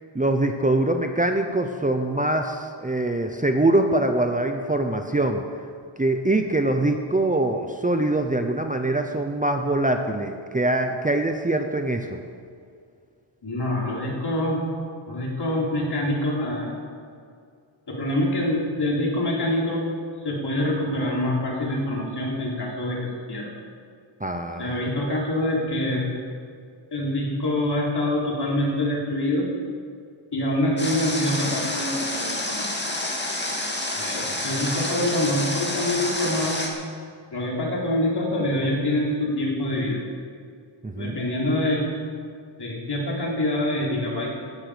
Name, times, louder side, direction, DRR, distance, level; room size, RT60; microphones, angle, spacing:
voice 1, 0.1-5.4 6.0-12.2 24.2-24.8 40.8-41.2, right 2 dB, 15° right, 5 dB, 0.7 m, -23 dB
voice 2, 13.4-14.6 15.1-16.7 17.9-19.8 20.2-23.5 24.6-26.0 26.9-29.5 30.3-32.7 34.0-36.6 37.3-40.0 41.0-41.9 42.6-44.3, left 1 dB, 55° left, -3 dB, 3.7 m, -25 dB
Water, 30.8-36.7, left 1 dB, 20° left, 2.2 m, -28 dB
17.5 x 12.5 x 5.1 m, 2.3 s
wide cardioid pair, 155°, 48 cm